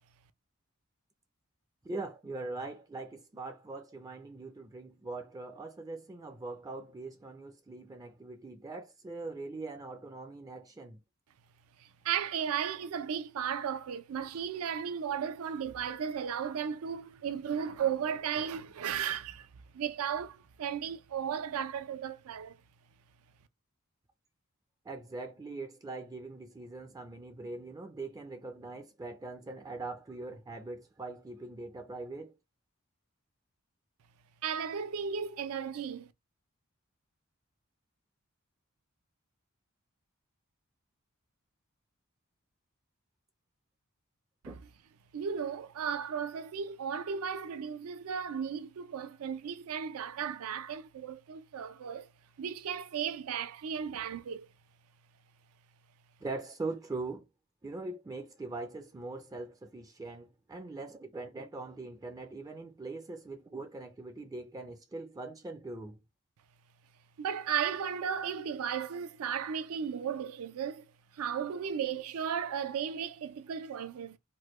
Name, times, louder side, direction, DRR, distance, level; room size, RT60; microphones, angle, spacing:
voice 1, 1.8-11.0 24.8-32.4 44.5-44.6 56.2-57.3 57.6-66.0, right 3 dB, 15° right, 0.3 m, -42 dB
voice 2, 11.8-22.5 34.4-36.1 45.1-52.1 52.4-54.5 67.2-70.9 71.1-74.2, right 7 dB, 85° right, 0.4 m, -35 dB
3.2 x 2.1 x 3.0 m
head